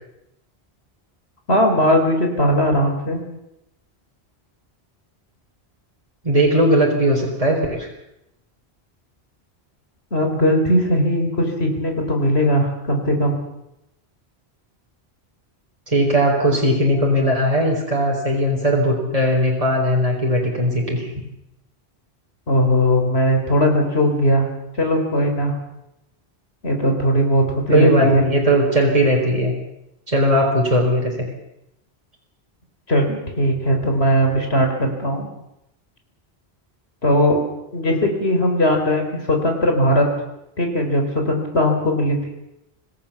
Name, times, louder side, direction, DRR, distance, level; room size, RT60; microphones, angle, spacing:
voice 1, 1.5-3.2 10.1-13.4 22.5-24.5 24.8-25.5 26.6-28.2 32.9-35.3 37.0-37.4 37.7-40.1 40.6-42.2, equal, 75° left, 3 dB, 4.8 m, -19 dB
voice 2, 6.2-7.9 15.9-21.1 27.7-29.5 30.1-31.2, equal, 35° right, -1 dB, 4.4 m, -18 dB
26.0 x 16.5 x 7.3 m, 0.84 s
omnidirectional pair, 1.1 m